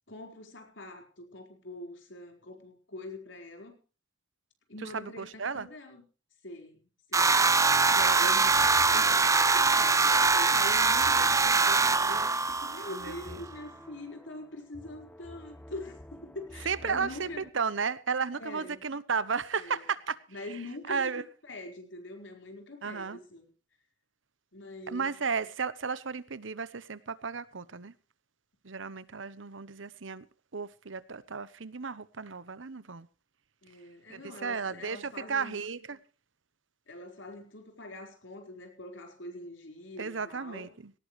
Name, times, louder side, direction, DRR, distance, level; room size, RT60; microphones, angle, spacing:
voice 1, 0.1-3.8 4.7-6.0 6.4-7.4 8.1-8.5 9.5-17.4 18.3-18.8 19.5-19.8 20.3-23.5 24.5-25.1 33.6-35.6 36.9-40.7, left 2 dB, 75° left, 4.6 m, -44 dB
voice 2, 4.8-5.7 7.9-8.3 8.9-9.2 12.9-13.4 16.6-20.2 20.9-21.2 22.8-23.2 24.9-27.9 28.6-30.3 30.5-33.1 34.1-36.0 40.0-40.9, right 5 dB, 85° right, 1.0 m, -34 dB
sound 1, 7.1-13.3, right 4 dB, 15° right, 0.6 m, -23 dB
sound 2, 8.0-17.5, equal, 10° left, 1.2 m, -51 dB
18.0 x 18.0 x 3.2 m
head